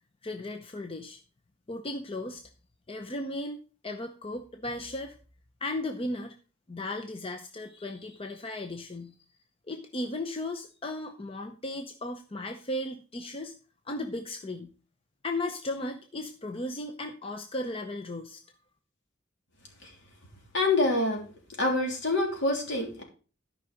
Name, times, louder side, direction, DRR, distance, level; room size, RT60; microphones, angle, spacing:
voice 1, 0.2-1.2 1.7-2.4 2.9-5.2 5.6-6.3 6.7-9.1 9.7-13.5 13.9-14.7 15.2-18.4, left 1 dB, 30° left, 5 dB, 0.7 m, -36 dB
voice 2, 20.5-21.2 21.6-23.0, left 2 dB, 65° left, 1 dB, 3.1 m, -26 dB
12.5 x 5.4 x 5.0 m, 0.37 s
head